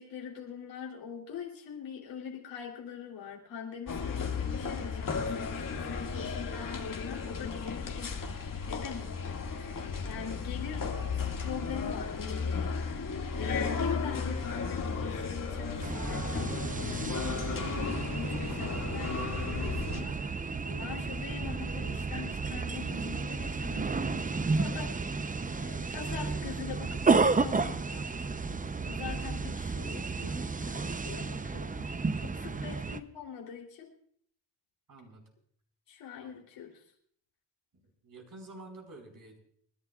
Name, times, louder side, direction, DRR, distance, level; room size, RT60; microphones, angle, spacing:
voice 1, 0.0-8.1 8.7-10.8 11.2-17.6 18.1-24.2 24.5-25.2 25.6-28.0 28.8-33.9 35.9-36.7, left 7 dB, 90° left, -1 dB, 3.3 m, -43 dB
sound 1, 3.9-20.0, left 5 dB, 50° left, 2.1 m, -34 dB
sound 2, 15.8-33.0, right 4 dB, 20° right, 0.7 m, -32 dB
voice 2, 34.9-35.2 36.2-36.4 37.7-39.4, right 2 dB, 50° right, 2 dB, 4.6 m, -50 dB
29.0 x 11.0 x 2.4 m, 0.63 s
cardioid pair, 75°, 42 cm